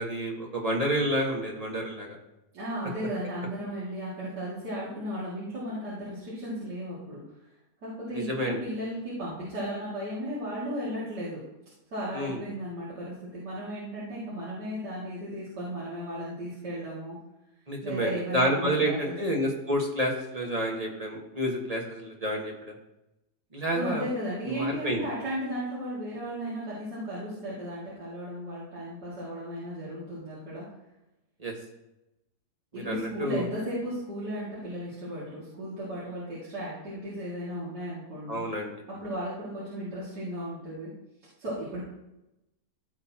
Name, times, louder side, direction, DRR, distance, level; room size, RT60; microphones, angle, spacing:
voice 1, 0.0-2.2 8.1-8.6 12.1-12.4 17.7-22.7 23.5-24.1 24.4-25.0 31.4-31.5 32.7-33.5 38.3-38.7, equal, 25° right, -1 dB, 1.4 m, -29 dB
voice 2, 2.5-7.2 7.8-11.4 11.9-17.2 17.8-19.2 23.7-30.7 32.7-38.4 38.9-40.9 41.4-41.8, equal, 75° right, -9 dB, 2.9 m, -35 dB
15.5 x 6.6 x 2.9 m, 0.92 s
omnidirectional pair, 1.8 m